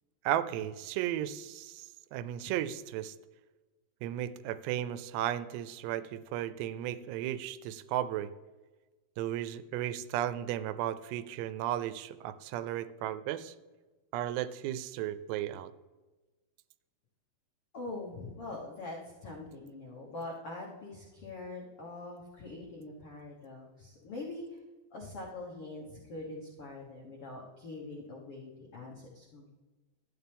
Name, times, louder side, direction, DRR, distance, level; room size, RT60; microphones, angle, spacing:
voice 1, 0.2-3.1 4.0-8.3 9.2-13.5 14.1-15.7, right 12 dB, 90° right, 13 dB, 2.7 m, -35 dB
voice 2, 17.7-24.6 24.9-29.5, left 2 dB, 85° left, -3 dB, 1.2 m, -43 dB
12.5 x 9.1 x 3.5 m, 1.2 s
omnidirectional pair, 4.8 m